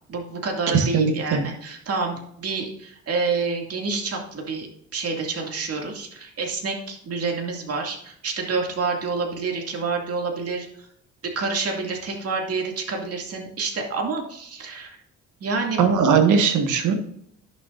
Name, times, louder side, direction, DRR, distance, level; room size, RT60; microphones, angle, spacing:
voice 1, 0.1-10.9 11.2-15.0 15.4-15.8, right 4 dB, 50° right, 1 dB, 2.3 m, -28 dB
voice 2, 0.7-1.4 15.8-16.9, right 6 dB, 80° right, 5 dB, 1.6 m, -19 dB
11.0 x 7.0 x 2.6 m, 0.68 s
cardioid pair, 90°, 30 cm